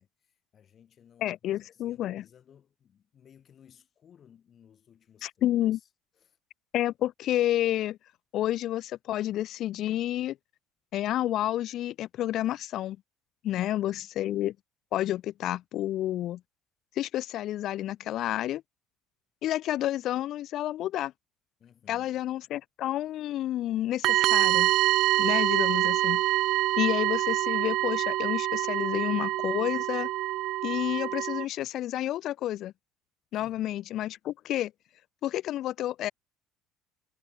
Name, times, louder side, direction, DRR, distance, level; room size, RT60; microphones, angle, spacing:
voice 1, 0.0-5.9 6.1-6.4 13.5-14.1 21.6-22.2 33.4-33.7, left 8 dB, 35° left, 3.8 m, -59 dB
voice 2, 1.2-2.2 5.2-5.8 6.7-8.0 8.3-10.4 10.9-13.0 13.4-14.5 14.9-16.4 17.0-18.6 19.4-21.1 21.9-24.7 25.2-26.2 26.8-30.1 30.6-32.7 33.3-34.7 35.2-36.1, left 13 dB, 55° left, 0.3 m, -30 dB
sound 1, 24.0-31.4, right 16 dB, 60° right, 0.4 m, -26 dB
cardioid pair, 135°, 0 cm